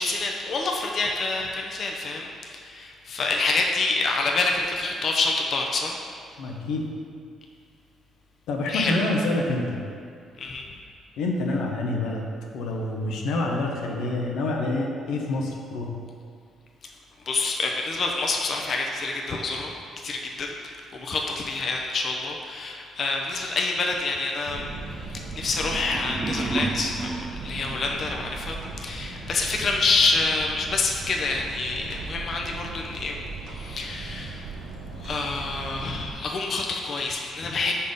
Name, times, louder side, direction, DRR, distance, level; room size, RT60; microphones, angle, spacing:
voice 1, 0.0-5.9 8.7-9.0 10.4-10.7 17.3-19.7 20.0-34.5 35.0-37.8, left 3 dB, 50° left, 1 dB, 0.6 m, -27 dB
voice 2, 6.4-6.9 8.5-9.8 11.2-12.3 12.5-15.9, left 2 dB, 90° left, 0 dB, 0.7 m, -27 dB
sound 1, 24.4-36.1, right 3 dB, 80° right, 0.8 m, -37 dB
sound 2, 25.4-28.4, right 3 dB, 30° right, 0.4 m, -33 dB
5.3 x 4.2 x 5.0 m, 2.3 s
cardioid pair, 90°, 0 cm